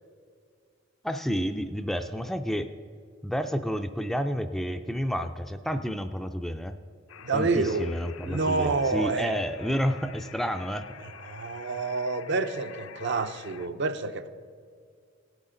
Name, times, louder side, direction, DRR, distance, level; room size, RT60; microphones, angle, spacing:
voice 1, 1.0-2.7 3.2-6.8 7.3-10.9, equal, ahead, 7 dB, 0.3 m, -30 dB
sound 1, 7.1-13.7, left 7 dB, 85° left, 0.6 m, -47 dB
voice 2, 7.2-7.9 8.2-9.3 11.0-14.3, right 3 dB, 60° right, 9 dB, 0.6 m, -28 dB
18.0 x 8.1 x 3.8 m, 2.1 s
head